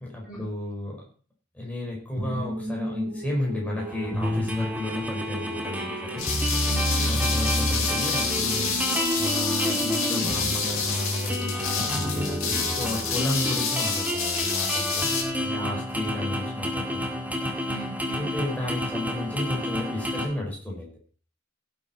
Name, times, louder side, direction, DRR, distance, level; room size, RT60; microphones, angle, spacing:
voice 1, 0.1-1.0 1.5-6.2 7.1-8.8 9.2-15.0 15.4-17.5 18.2-21.0, left 1 dB, 5° left, -2 dB, 5.3 m, -32 dB
sound 1, 2.2-13.0, equal, 55° right, 3.8 m, -32 dB
sound 2, 3.8-20.3, equal, 10° right, 2.0 m, -31 dB
sound 3, 6.2-15.2, left 5 dB, 80° left, 4.1 m, -28 dB
voice 2, 6.7-7.2 14.9-15.3 15.6-15.8 17.6-18.4, right 3 dB, 40° left, 1 dB, 4.5 m, -40 dB
17.0 x 8.3 x 4.5 m, 0.40 s
head